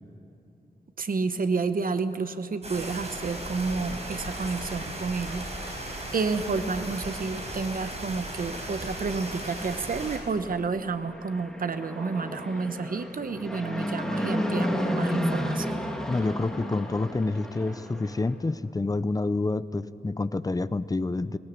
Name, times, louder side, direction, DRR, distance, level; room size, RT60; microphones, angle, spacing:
voice 1, 1.0-5.5 6.1-15.8, right 4 dB, 60° right, 10 dB, 0.9 m, -30 dB
sound 1, 2.6-10.2, right 1 dB, 40° right, 4.9 m, -36 dB
Fixed-wing aircraft airplane, 10.9-18.3, equal, 5° left, 1.8 m, -31 dB
voice 2, 16.1-21.4, left 3 dB, 20° left, 15 dB, 0.5 m, -28 dB
19.0 x 18.5 x 8.4 m, 2.8 s
wide cardioid pair, 115°, 17 cm